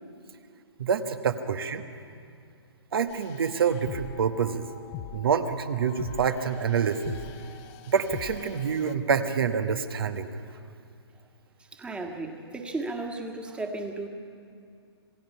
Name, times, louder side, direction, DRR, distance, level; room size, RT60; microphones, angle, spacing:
voice 1, 0.8-1.8 2.9-4.7 5.1-7.2 7.9-10.3 11.8-11.9, right 6 dB, 60° right, 8 dB, 1.3 m, -27 dB
sound 1, 3.1-8.9, left 10 dB, 30° left, 0.8 m, -43 dB
voice 2, 11.7-14.1, right 2 dB, 10° right, 3 dB, 1.7 m, -34 dB
27.0 x 19.0 x 5.6 m, 2.3 s
figure-of-eight pair, 125°, 14 cm